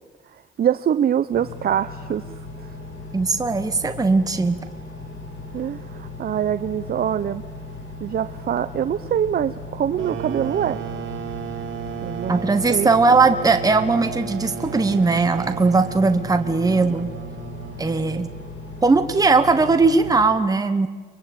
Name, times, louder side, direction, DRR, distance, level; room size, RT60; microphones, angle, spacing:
voice 1, 0.6-2.2 2.6-2.7 5.5-7.4 8.0-10.8 12.0-12.4 12.7-13.2 14.9-15.0, right 9 dB, 50° right, 12 dB, 0.8 m, -24 dB
Engine, 1.3-20.2, left 2 dB, 80° left, 7.1 m, -37 dB
voice 2, 3.1-4.6 12.3-17.1 17.8-18.3 18.8-20.9, right 3 dB, 20° right, 8 dB, 1.2 m, -19 dB
sound 1, 9.9-18.4, right 8 dB, 75° right, 2.3 m, -34 dB
23.5 x 23.0 x 8.8 m, 1.4 s
cardioid pair, 90°, 20 cm